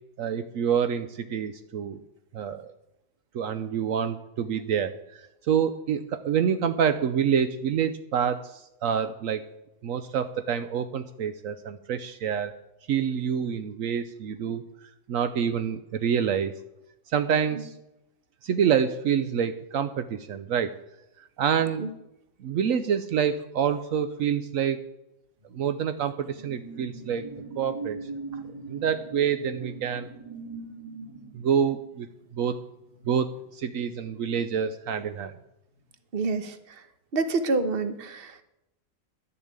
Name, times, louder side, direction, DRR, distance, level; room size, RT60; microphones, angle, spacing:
voice 1, 0.2-2.0 2.3-2.7 3.3-9.5 9.8-12.5 12.9-16.5 17.1-17.7 18.4-20.7 21.4-21.8 22.4-24.8 25.5-27.3 27.6-28.0 28.7-30.1 31.3-32.1 32.3-32.6 33.0-35.3, right 8 dB, 75° right, 10 dB, 1.0 m, -27 dB
sound 1, 25.5-34.5 34.8-35.1, right 3 dB, 25° right, 1.9 m, -42 dB
voice 2, 36.1-36.5 37.1-38.4, right 3 dB, 45° right, 10 dB, 1.2 m, -27 dB
11.5 x 6.9 x 8.8 m, 0.89 s
omnidirectional pair, 1.5 m